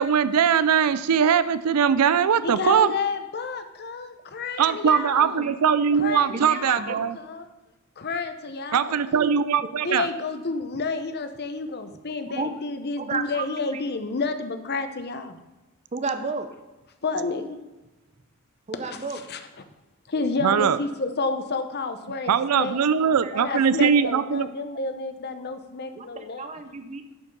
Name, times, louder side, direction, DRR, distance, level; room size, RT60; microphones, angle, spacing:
voice 1, 0.0-2.9 4.6-7.1 8.7-10.1 20.4-20.8 22.3-24.5, right 7 dB, 90° right, 14 dB, 0.4 m, -21 dB
voice 2, 2.4-5.5 5.9-7.4 8.0-9.4 9.8-15.4 17.0-17.6 18.8-19.0 19.3-19.4 20.1-22.8 23.3-26.5, left 3 dB, 45° left, 8 dB, 0.8 m, -30 dB
voice 3, 6.3-7.0 12.3-12.5 13.0-13.8 15.9-16.5 18.7-19.2 23.0-23.6 25.9-27.1, right 4 dB, 30° right, 8 dB, 0.6 m, -32 dB
11.0 x 5.3 x 5.3 m, 1.1 s
head